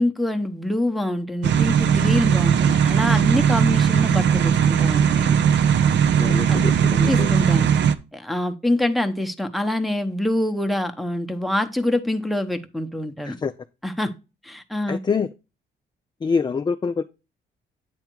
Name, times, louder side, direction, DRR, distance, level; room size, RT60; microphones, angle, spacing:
voice 1, 0.0-5.4 6.5-6.7 7.1-7.7 8.1-13.4 13.8-14.1 14.4-15.0, left 1 dB, ahead, 0.9 m, -25 dB
sound 1, 1.4-7.9, right 8 dB, 65° right, 0.6 m, -18 dB
voice 2, 5.9-7.3 13.2-13.5 14.9-15.3 16.2-17.0, left 5 dB, 20° left, 0.4 m, -26 dB
9.0 x 3.5 x 4.5 m
cardioid pair, 90°, 20 cm